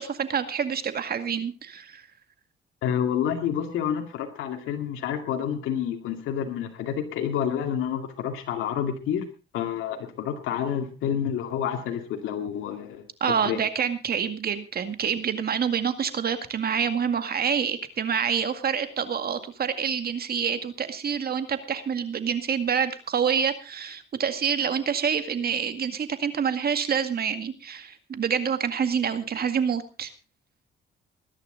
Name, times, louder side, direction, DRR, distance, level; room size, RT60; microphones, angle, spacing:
voice 1, 0.0-2.0 13.2-30.1, right 7 dB, 50° right, 10 dB, 2.1 m, -27 dB
voice 2, 2.8-9.3 9.5-13.6, left 9 dB, 85° left, 4 dB, 2.4 m, -29 dB
20.5 x 11.5 x 3.9 m, 0.32 s
cardioid pair, 90°, 20 cm